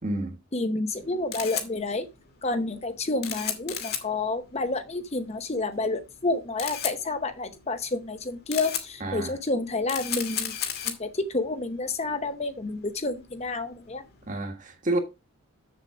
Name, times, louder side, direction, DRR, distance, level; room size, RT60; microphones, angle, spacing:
voice 1, 0.0-0.4 9.0-9.4 14.3-15.0, right 1 dB, 35° right, 1.5 m, -29 dB
voice 2, 0.5-2.1 2.4-10.5 10.8-14.0, left 2 dB, 30° left, 0.8 m, -29 dB
Camera, 0.9-14.3, left 9 dB, 45° left, 1.7 m, -36 dB
7.3 x 7.0 x 4.9 m
head